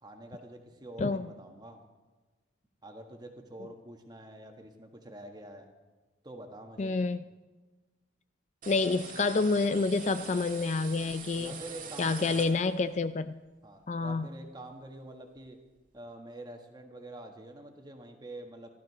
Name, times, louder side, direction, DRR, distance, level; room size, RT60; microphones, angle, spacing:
voice 1, 0.0-1.8 2.8-5.7 6.2-7.0 11.4-12.7 13.6-15.6 15.9-18.8, right 1 dB, 20° right, 4 dB, 1.4 m, -46 dB
voice 2, 6.8-7.2 8.7-11.6 12.0-13.4 13.9-14.3, left 3 dB, 35° left, 12 dB, 0.3 m, -28 dB
sound 1, 8.6-13.0, right 5 dB, 45° right, 1.8 m, -44 dB
17.5 x 13.5 x 4.1 m, 1.2 s
head